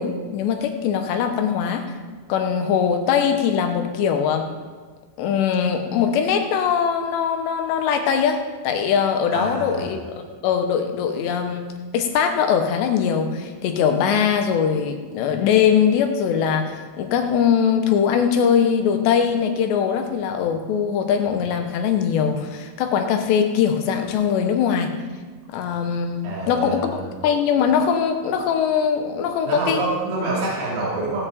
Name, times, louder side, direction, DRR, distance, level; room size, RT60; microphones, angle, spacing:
voice 1, 0.0-1.9 2.3-4.5 5.2-11.7 11.9-24.9 25.5-29.9, left 7 dB, 85° left, 6 dB, 3.2 m, -21 dB
voice 2, 9.3-9.9 26.2-27.0 29.4-31.3, right 2 dB, 80° right, -6 dB, 5.1 m, -26 dB
17.0 x 8.9 x 4.3 m, 1.5 s
omnidirectional pair, 5.0 m